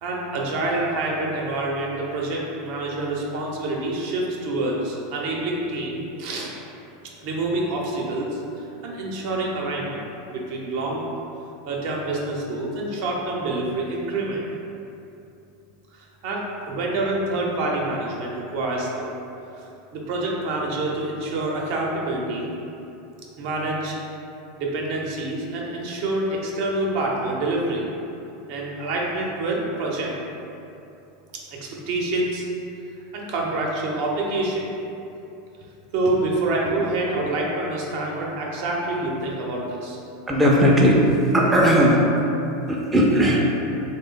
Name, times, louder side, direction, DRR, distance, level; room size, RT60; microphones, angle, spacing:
voice 1, 0.0-6.5 7.2-10.0 10.3-11.1 11.7-14.4 15.9-19.1 19.6-22.5 23.4-24.0 24.6-27.9 28.5-30.1 31.3-32.4 33.1-34.7 35.9-40.0, right 2 dB, 60° right, -2 dB, 0.6 m, -27 dB
voice 2, 40.3-41.0 41.3-42.0 42.7-43.4, equal, 10° right, -4 dB, 0.4 m, -17 dB
3.3 x 2.1 x 3.7 m, 2.8 s
supercardioid pair, 120°, 0 cm